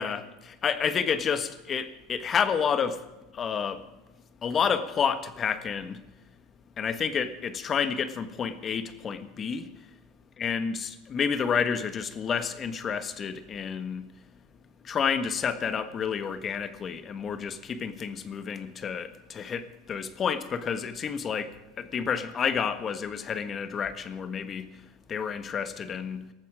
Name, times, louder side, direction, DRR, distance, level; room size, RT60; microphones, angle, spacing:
voice 1, 0.0-3.1 3.3-3.9 4.4-6.0 6.8-9.7 10.4-14.1 14.8-26.2, left 6 dB, 35° left, 1.4 m, -30 dB
19.0 x 14.0 x 5.0 m
hypercardioid pair, 80°, 0 cm